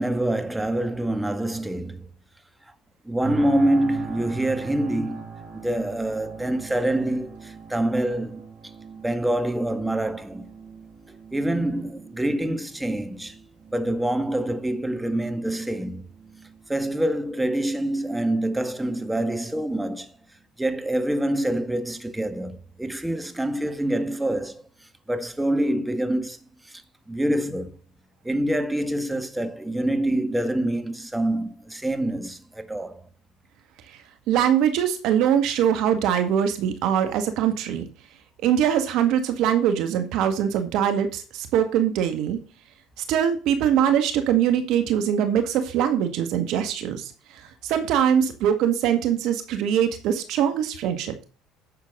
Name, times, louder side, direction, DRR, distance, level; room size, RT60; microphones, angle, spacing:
voice 1, 0.0-2.1 3.1-5.2 5.6-8.5 9.0-10.5 11.3-13.4 13.7-16.0 16.7-20.1 20.6-24.6 25.1-26.4 27.1-27.7 28.3-33.0, right 1 dB, 10° right, 1.8 m, -26 dB
sound 1, 3.2-18.2 18.7-18.9, right 6 dB, 50° right, 3.4 m, -42 dB
voice 2, 34.3-37.9 38.4-42.4 43.0-51.2, right 9 dB, 65° right, 1.9 m, -22 dB
11.0 x 7.3 x 3.9 m
hypercardioid pair, 70°, 0 cm